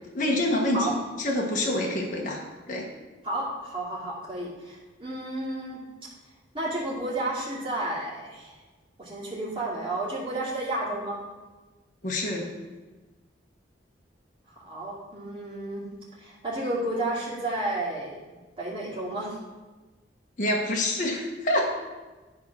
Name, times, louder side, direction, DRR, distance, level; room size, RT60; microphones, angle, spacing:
voice 1, 0.1-2.9 12.0-12.5 20.4-21.7, left 1 dB, 45° left, -1 dB, 1.2 m, -27 dB
voice 2, 3.2-5.8 6.5-8.6 9.0-11.2 14.6-15.8 16.1-18.2 18.6-19.3, right 1 dB, 30° right, -6 dB, 2.6 m, -31 dB
10.5 x 4.3 x 6.0 m, 1.2 s
head